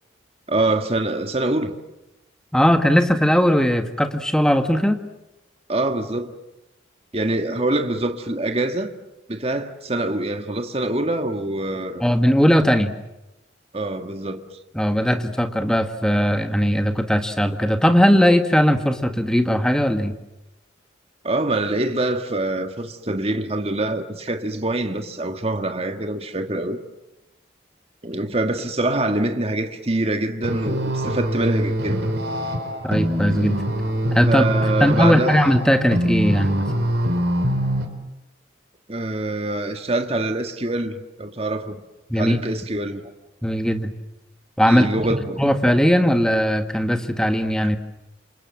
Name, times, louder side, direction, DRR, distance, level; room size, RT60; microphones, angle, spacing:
voice 1, 0.5-1.7 5.7-6.3 7.1-8.9 9.3-12.0 13.7-14.4 21.2-26.8 28.0-32.1 34.3-35.3 38.9-41.8 42.1-43.1 44.6-45.4, right 2 dB, 30° right, 1.7 m, -24 dB
voice 2, 2.5-5.0 12.0-12.9 14.7-20.1 32.8-33.6 34.1-34.4 34.8-36.7 42.1-42.4 43.4-43.9 44.6-44.9 45.4-47.8, equal, 5° left, 1.7 m, -18 dB
sound 1, 30.4-37.9, equal, 60° right, 3.8 m, -24 dB
29.0 x 27.0 x 7.7 m
head